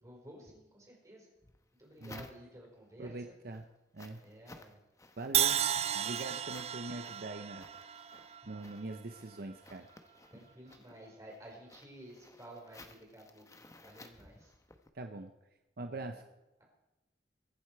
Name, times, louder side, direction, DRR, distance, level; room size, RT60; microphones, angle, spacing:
voice 1, 0.0-1.3 1.8-3.4 4.2-4.8 5.6-6.1 10.3-13.4 13.8-14.5 15.8-16.1, right 1 dB, 20° right, -2 dB, 5.0 m, -53 dB
sound 1, 1.4-2.8 3.3-14.9, left 2 dB, 20° left, 1.0 m, -57 dB
voice 2, 3.0-3.7 3.9-4.2 5.2-5.7 5.9-7.7 8.5-9.9 14.9-15.3 15.8-16.2, right 2 dB, 60° right, 6 dB, 0.8 m, -42 dB
Crash cymbal, 5.3-9.4, right 10 dB, 35° right, 0.5 m, -34 dB
23.0 x 8.1 x 4.7 m, 0.97 s
head